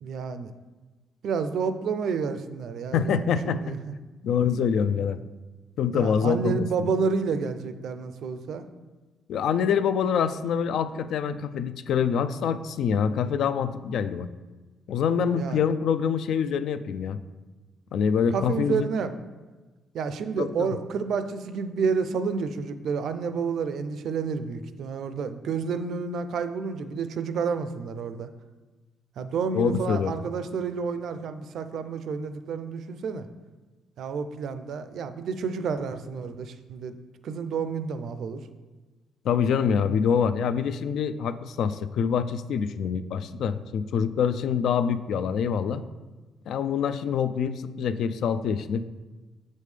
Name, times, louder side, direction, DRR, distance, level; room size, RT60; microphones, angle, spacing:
voice 1, 0.0-0.5 1.2-3.8 5.9-8.6 15.3-15.6 18.3-19.1 19.9-28.3 29.2-33.3 34.0-37.0 37.2-38.4, right 5 dB, 70° right, 10 dB, 0.4 m, -30 dB
voice 2, 2.9-3.8 4.2-5.2 5.8-6.9 9.3-14.3 14.9-17.2 17.9-18.9 20.4-20.7 29.5-30.1 39.2-45.8 46.5-48.8, left 7 dB, 75° left, 12 dB, 0.3 m, -25 dB
6.6 x 5.3 x 3.3 m, 1.2 s
cardioid pair, 90°, 0 cm